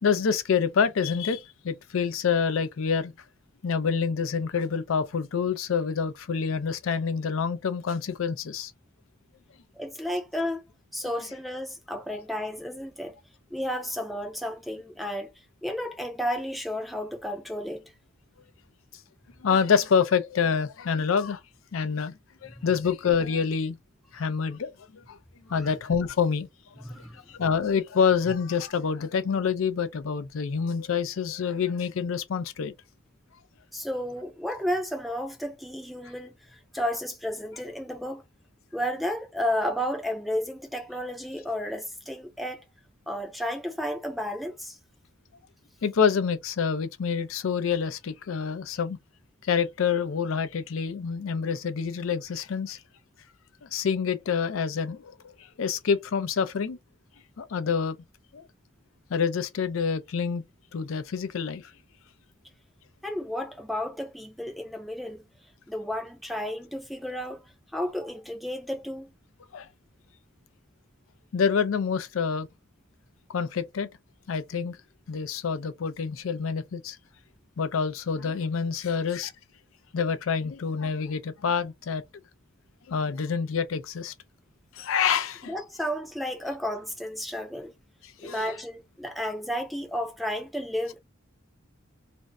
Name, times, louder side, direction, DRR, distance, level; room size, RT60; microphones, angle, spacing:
voice 1, 0.0-3.1 3.6-8.7 12.1-12.2 19.4-21.4 21.7-23.8 24.1-24.7 25.1-25.2 25.5-26.5 26.8-26.9 27.1-32.7 45.8-49.0 49.4-52.8 53.6-56.8 57.4-58.0 58.3-58.5 59.1-60.4 60.7-61.6 69.5-69.7 71.3-72.5 73.3-73.9 74.3-74.8 75.1-77.0 77.6-79.3 79.9-82.0 82.9-84.1 84.7-85.5 88.0-88.5, left 6 dB, 80° left, 0.4 m, -27 dB
voice 2, 9.8-10.6 10.9-13.2 13.5-15.3 15.6-17.8 22.6-22.7 25.6-25.7 26.8-27.2 33.7-38.2 38.7-42.6 43.1-44.8 63.0-65.2 65.7-67.4 67.7-69.1 85.4-87.7 88.2-91.0, equal, ahead, 0.4 m, -32 dB
2.5 x 2.0 x 3.4 m
head